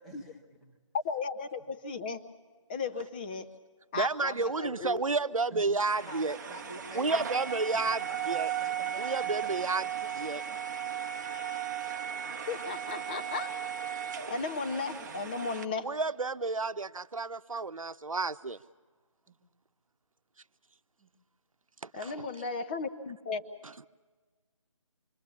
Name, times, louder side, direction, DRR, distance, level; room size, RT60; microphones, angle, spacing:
voice 1, 0.0-0.8 5.5-5.7 6.1-7.2 7.7-10.1 10.5-10.6 15.0-15.2 19.3-19.4 21.0-21.1, right 1 dB, ahead, -5 dB, 1.6 m, -49 dB
voice 2, 0.9-2.2 2.7-3.5 3.9-5.0 12.5-13.5 14.3-15.9 21.9-23.4, left 4 dB, 15° left, 13 dB, 0.6 m, -35 dB
voice 3, 3.9-6.4 6.9-8.5 9.0-9.9 10.1-10.4 15.8-18.6 21.8-22.3, right 3 dB, 85° right, 14 dB, 0.8 m, -31 dB
sound 1, 5.9-15.7, right 9 dB, 35° right, 1.0 m, -36 dB
27.0 x 22.0 x 7.1 m, 1.4 s
figure-of-eight pair, 160°, 17 cm